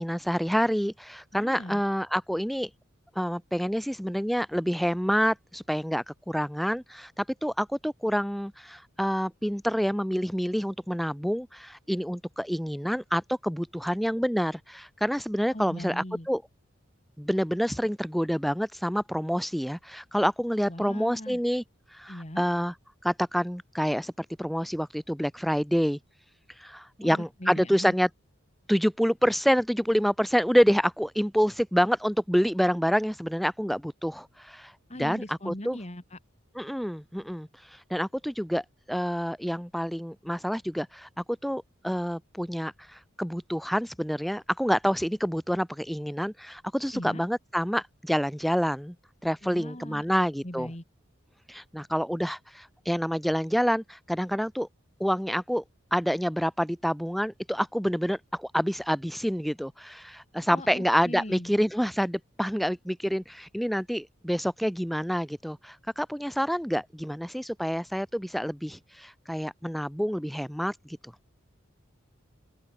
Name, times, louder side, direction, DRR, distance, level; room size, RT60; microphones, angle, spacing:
voice 1, 0.0-2.7 3.2-16.4 17.2-21.6 21.9-22.7 23.0-26.0 26.6-28.1 28.7-34.7 35.0-35.8 36.5-41.1 41.4-48.9 49.2-50.7 51.5-54.7 55.0-55.6 55.9-71.0, equal, ahead, 2.3 m, -27 dB
voice 2, 1.3-1.8 15.5-16.3 20.7-21.4 22.1-22.4 27.0-28.0 34.9-36.2 46.9-47.2 49.4-50.8 60.5-61.5, left 1 dB, 30° left, 2.9 m, -39 dB
open air
head